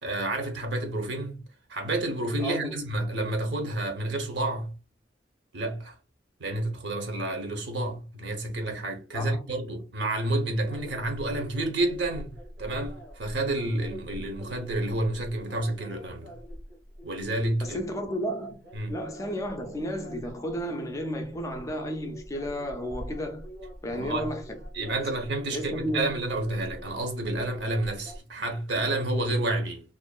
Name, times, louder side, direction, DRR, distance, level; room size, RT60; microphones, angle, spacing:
voice 1, 0.0-1.4 1.7-4.7 5.5-5.9 6.4-12.3 12.6-16.3 17.0-17.8 18.7-18.9 23.9-24.3 24.7-29.8, right 2 dB, 70° right, 0.7 m, -30 dB
voice 2, 2.4-2.8 9.1-9.4 17.6-18.6 18.9-23.5 23.8-24.6 25.0-25.1 25.5-26.1, equal, 15° left, 0.3 m, -33 dB
sound 1, 10.6-28.2, equal, 90° right, 1.2 m, -44 dB
2.4 x 2.2 x 2.3 m
head